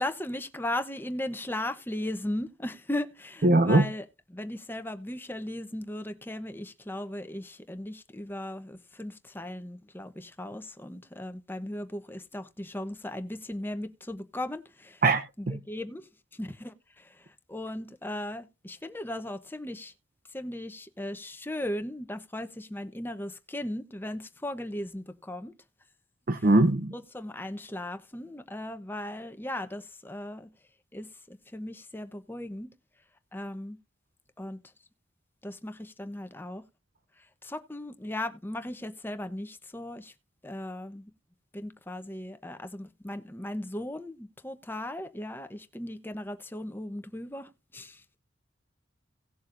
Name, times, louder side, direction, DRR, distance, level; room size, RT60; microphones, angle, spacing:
voice 1, 0.0-15.0 15.4-16.1 16.3-19.9 20.3-25.5 26.3-26.5 26.9-30.5 30.9-32.7 33.3-33.8 34.4-34.6 35.4-36.6 37.4-40.1 40.4-41.1 41.5-48.2, left 1 dB, 10° left, 0.9 m, -37 dB
voice 2, 3.4-3.8 15.0-15.2 15.5-15.6 26.3-26.9, right 2 dB, 50° right, 0.7 m, -21 dB
18.0 x 7.1 x 2.6 m
head